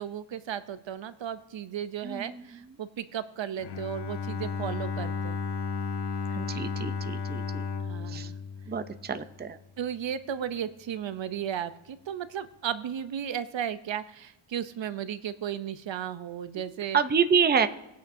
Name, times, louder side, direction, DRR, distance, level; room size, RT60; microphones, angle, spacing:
voice 1, 0.0-5.4 7.8-8.4 9.8-17.0, right 9 dB, 65° right, 13 dB, 0.7 m, -35 dB
voice 2, 2.0-2.7 6.3-7.6 8.1-8.3 8.7-9.6 16.9-17.7, right 6 dB, 20° right, 10 dB, 0.5 m, -28 dB
Bowed string instrument, 3.6-9.5, left 5 dB, 60° left, 0.7 m, -34 dB
19.5 x 9.3 x 2.6 m, 0.94 s
wide cardioid pair, 130°, 48 cm